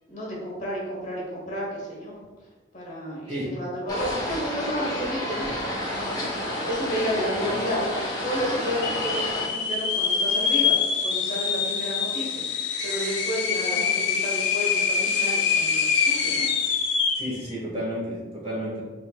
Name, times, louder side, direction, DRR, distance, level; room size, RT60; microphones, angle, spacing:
voice 1, 0.1-2.1 2.7-10.7 11.0-12.4 12.8-16.5, equal, 45° left, -4 dB, 1.0 m, -31 dB
sound 1, 3.9-9.5, left 1 dB, 20° left, 0.7 m, -30 dB
sound 2, 6.4-6.5 6.7-7.3 7.8-7.9 8.6-17.4, left 6 dB, 80° left, 0.5 m, -25 dB
voice 2, 17.2-18.8, equal, 30° right, -6 dB, 1.2 m, -31 dB
4.1 x 3.3 x 2.2 m, 1.3 s
head